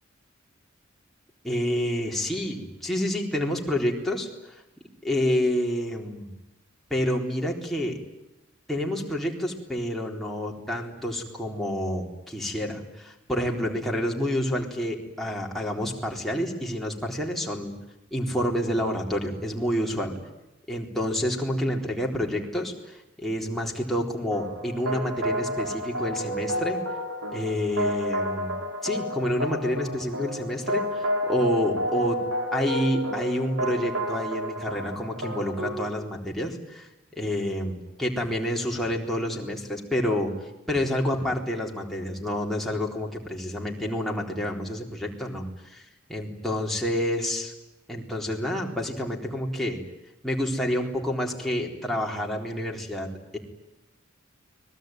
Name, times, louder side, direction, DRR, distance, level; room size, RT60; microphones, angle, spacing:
voice 1, 1.4-4.6 5.0-6.3 6.9-8.0 8.7-17.7 18.1-20.2 20.7-26.8 27.3-28.6 28.8-32.2 32.5-40.3 40.7-47.5 47.9-49.8 50.2-53.4, left 1 dB, ahead, -1 dB, 4.0 m, -28 dB
sound 1, 24.3-35.9, equal, 70° right, 4.8 m, -31 dB
30.0 x 21.0 x 9.3 m, 0.95 s
head